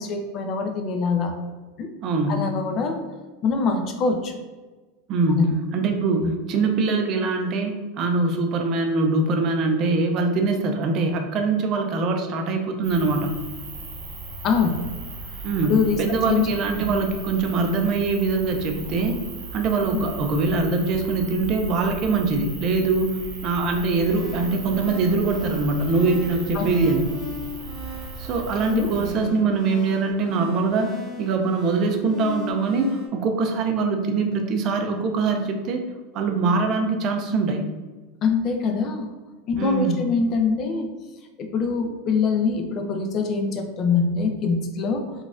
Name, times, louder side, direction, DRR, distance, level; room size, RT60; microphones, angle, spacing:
voice 1, 0.0-1.3 1.8-1.9 2.3-3.0 3.4-4.4 5.3-5.5 6.2-6.3 14.4-14.8 15.6-16.0 16.3-16.9 19.9-20.1 26.5-26.8 28.7-28.9 38.2-39.1 39.5-40.9 41.4-45.0, left 4 dB, 40° left, 4 dB, 0.5 m, -24 dB
voice 2, 2.0-2.5 5.1-13.4 15.4-19.2 19.5-27.1 28.2-35.8 36.1-37.6 39.6-40.0, right 3 dB, 40° right, 3 dB, 0.5 m, -23 dB
sound 1, 12.8-29.1, right 3 dB, 65° right, 1.0 m, -37 dB
sound 2, 23.7-33.1, left 1 dB, 10° left, 1.1 m, -37 dB
3.9 x 2.3 x 2.5 m, 1.3 s
supercardioid pair, 130°, 0 cm